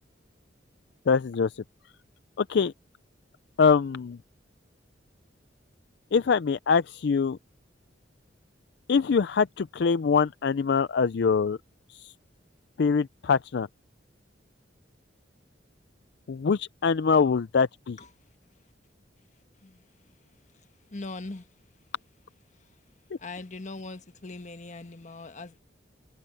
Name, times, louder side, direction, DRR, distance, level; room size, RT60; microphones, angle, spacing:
voice 1, 1.1-1.5 2.4-2.7 3.6-4.2 6.1-7.4 8.9-11.6 12.0-12.1 12.8-13.7 16.3-18.0, left 5 dB, 60° left, 0.4 m, -23 dB
voice 2, 20.5-21.5 23.2-25.6, left 2 dB, 40° left, 1.3 m, -41 dB
head